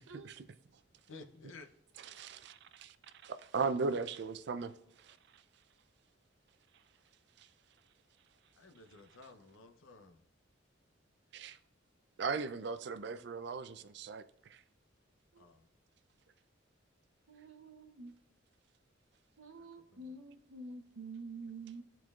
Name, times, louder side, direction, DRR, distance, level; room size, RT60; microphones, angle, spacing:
voice 1, 0.1-0.4 2.1-2.9 3.2-4.7 11.3-11.6 12.2-14.2, right 4 dB, 55° right, 0.4 m, -37 dB
voice 2, 1.1-1.7 8.6-10.2 15.4-15.7 19.6-20.2, left 3 dB, 80° left, 0.7 m, -55 dB
voice 3, 17.3-18.1 19.4-21.8, right 3 dB, 85° right, 0.8 m, -48 dB
13.0 x 4.5 x 2.4 m
head